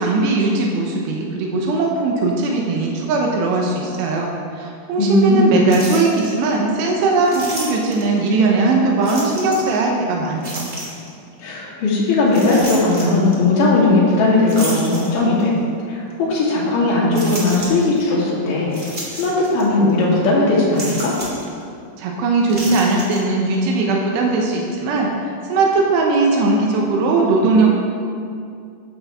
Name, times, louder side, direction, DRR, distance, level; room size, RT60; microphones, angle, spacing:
voice 1, 0.0-4.3 4.6-10.7 22.0-25.1 25.5-27.8, right 3 dB, 90° right, -1 dB, 3.2 m, -19 dB
voice 2, 5.0-5.6 11.4-15.6 15.9-21.2, left 2 dB, 55° left, -6 dB, 3.8 m, -17 dB
sound 1, 5.7-6.3 7.3-8.2 9.0-9.8 10.4-11.1 12.3-13.4 14.5-15.5 16.1-16.2 17.1-18.0 18.7-19.6 19.9-20.0 20.7-21.5 22.4-23.2, right 1 dB, 45° right, 0.9 m, -31 dB
12.5 x 9.3 x 3.6 m, 2.3 s
omnidirectional pair, 4.8 m